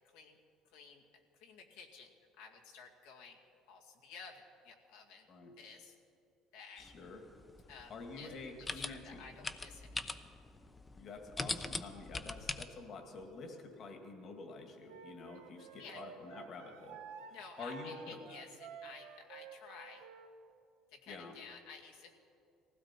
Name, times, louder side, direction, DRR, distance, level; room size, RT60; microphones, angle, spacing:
voice 1, 0.6-1.0 1.3-3.4 3.7-5.3 5.6-6.0 6.5-6.9 7.7-10.2 15.8-16.1 17.3-20.1 20.9-22.1, left 5 dB, 80° left, 0 dB, 2.1 m, -53 dB
voice 2, 6.8-7.2 7.9-9.2 10.9-17.0 17.3-18.2 21.1-21.3, left 3 dB, 55° left, 4 dB, 2.2 m, -48 dB
sound 1, 6.8-12.6, left 3 dB, 20° left, 0.8 m, -43 dB
Wind instrument woodwind instrument, 14.9-20.3, right 6 dB, 85° right, 1.1 m, -52 dB
19.5 x 16.0 x 4.5 m, 2.6 s
supercardioid pair, 80°, 0 cm